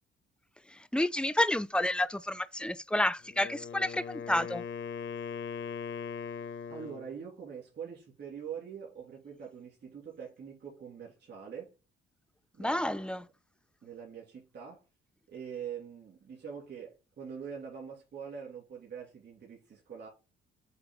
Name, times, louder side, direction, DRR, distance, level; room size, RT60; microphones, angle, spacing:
voice 1, 0.9-4.6 12.6-13.3, left 1 dB, 5° left, 0.4 m, -30 dB
Wind instrument woodwind instrument, 3.2-7.1, left 6 dB, 70° left, 0.7 m, -40 dB
voice 2, 6.7-11.7 12.5-13.2 13.8-14.8 15.3-20.1, right 7 dB, 60° right, 2.8 m, -44 dB
8.0 x 3.0 x 3.9 m
cardioid pair, 90°, 20 cm